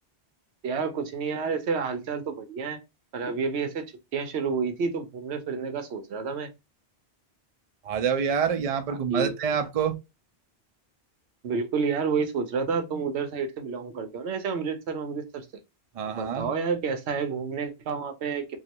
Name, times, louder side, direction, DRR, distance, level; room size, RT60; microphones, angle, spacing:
voice 1, 0.6-2.8 3.1-3.9 4.1-6.5 8.9-9.4 11.4-15.5 16.2-18.6, right 5 dB, 90° right, 1.0 m, -29 dB
voice 2, 7.8-10.0 16.0-16.5, right 7 dB, 45° right, 0.5 m, -26 dB
3.1 x 2.5 x 2.8 m
omnidirectional pair, 1.1 m